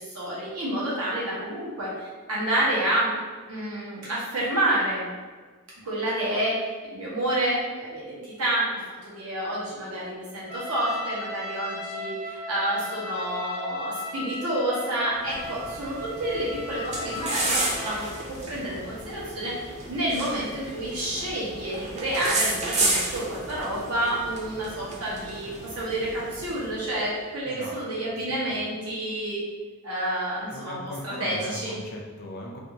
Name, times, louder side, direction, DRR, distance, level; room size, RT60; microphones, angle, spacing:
voice 1, 0.0-3.2 3.5-5.1 5.8-8.7 9.0-29.4 29.8-30.8 31.0-31.7, right 1 dB, 90° right, -6 dB, 1.0 m, -29 dB
Trumpet, 10.5-18.2, left 2 dB, 60° right, 0.8 m, -37 dB
sound 1, 15.2-27.0, right 2 dB, 30° right, 0.4 m, -32 dB
voice 2, 27.4-28.2 28.5-28.6 30.5-32.6, left 1 dB, 45° left, -1 dB, 0.4 m, -39 dB
2.6 x 2.4 x 2.8 m, 1.5 s
head